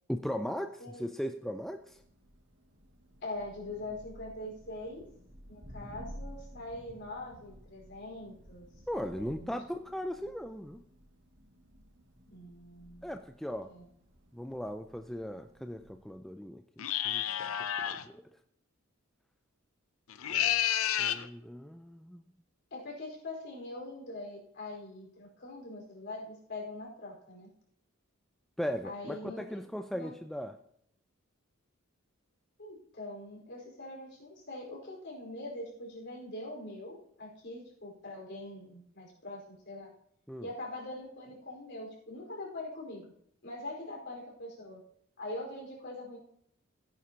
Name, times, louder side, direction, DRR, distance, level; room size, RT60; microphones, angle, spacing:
voice 1, 0.1-2.0 8.9-10.8 13.0-13.7 14.3-17.2 17.8-18.2 20.3-20.5 21.0-22.2 28.6-30.6 40.3-40.5, equal, ahead, 6 dB, 0.4 m, -38 dB
Thunder, 1.6-16.2, equal, 55° right, 2.1 m, -53 dB
voice 2, 3.2-5.0 5.5-8.7 9.0-9.6 12.3-13.1 13.6-13.8 22.7-27.5 28.8-29.7 29.9-30.1 32.6-39.9 40.4-43.1 43.4-44.8 45.2-46.2, left 2 dB, 55° left, -1 dB, 4.7 m, -43 dB
sound 1, 16.8-18.0 20.1-21.3, left 10 dB, 75° left, 0.6 m, -30 dB
16.5 x 9.5 x 2.9 m, 0.70 s
head